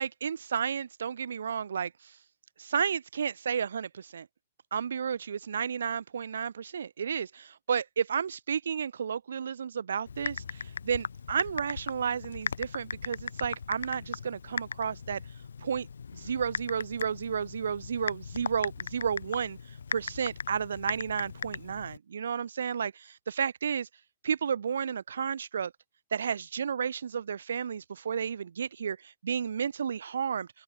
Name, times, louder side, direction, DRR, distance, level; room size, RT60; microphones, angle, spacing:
voice 1, 0.0-1.9 2.6-4.3 4.7-15.2 15.6-15.9 16.1-19.6 19.9-23.9 24.2-25.7 26.1-30.5, right 7 dB, 75° right, 0.8 m, -32 dB
Typing, 10.1-22.0, left 6 dB, 85° left, 1.0 m, -38 dB
open air
hypercardioid pair, 130°, 0 cm